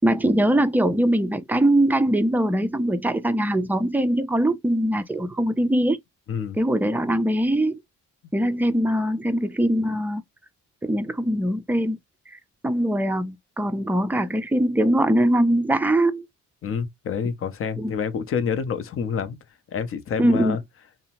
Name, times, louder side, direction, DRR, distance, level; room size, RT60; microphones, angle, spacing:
voice 1, 0.0-6.0 6.6-7.8 8.3-10.2 10.8-12.0 12.6-16.3 17.8-17.9 20.2-20.6, right 1 dB, 5° right, 0.4 m, -22 dB
voice 2, 6.3-6.6 16.6-19.4 19.7-20.6, left 6 dB, 45° left, 0.6 m, -27 dB
2.7 x 2.0 x 2.8 m
cardioid pair, 90°, 30 cm